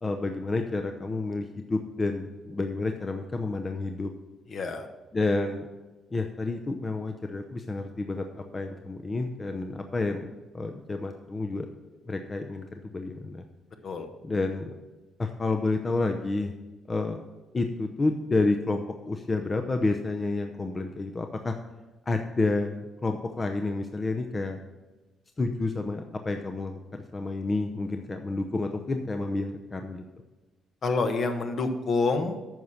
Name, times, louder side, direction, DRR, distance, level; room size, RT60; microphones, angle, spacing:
voice 1, 0.0-4.1 5.1-5.7 6.1-11.7 12.1-13.4 14.2-14.7 15.2-16.5 16.9-17.2 17.5-21.5 22.1-24.6 25.4-30.0, left 3 dB, 30° left, 5 dB, 0.7 m, -30 dB
voice 2, 4.5-4.9 13.8-14.1 30.8-32.4, left 3 dB, 55° left, 6 dB, 1.1 m, -27 dB
9.2 x 5.7 x 6.5 m, 1.1 s
cardioid pair, 90°, 0 cm